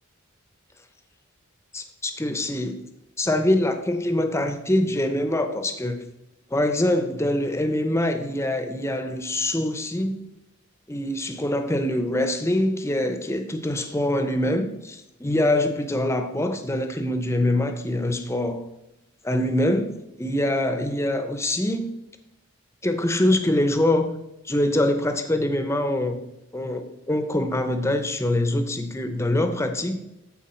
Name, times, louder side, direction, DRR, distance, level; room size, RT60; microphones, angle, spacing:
voice 1, 1.7-2.7 3.2-6.1 6.5-10.2 10.9-18.6 19.2-21.9 22.8-24.2 24.4-26.2 26.5-30.0, left 1 dB, 15° left, 7 dB, 0.6 m, -24 dB
13.0 x 4.6 x 4.3 m, 0.90 s
head